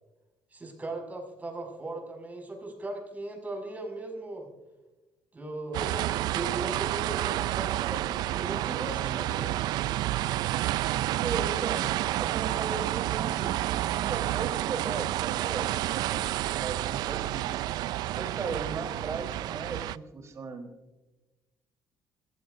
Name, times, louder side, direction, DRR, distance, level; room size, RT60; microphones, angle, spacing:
voice 1, 0.5-4.5 5.3-9.5, right 2 dB, 20° right, 1 dB, 5.9 m, -38 dB
sound 1, 5.7-20.0, right 15 dB, 75° right, 0.4 m, -30 dB
voice 2, 11.2-11.9 12.2-17.5 18.1-20.7, right 4 dB, 45° right, 5 dB, 3.6 m, -37 dB
25.5 x 16.0 x 2.6 m, 1.1 s
cardioid pair, 100°, 7 cm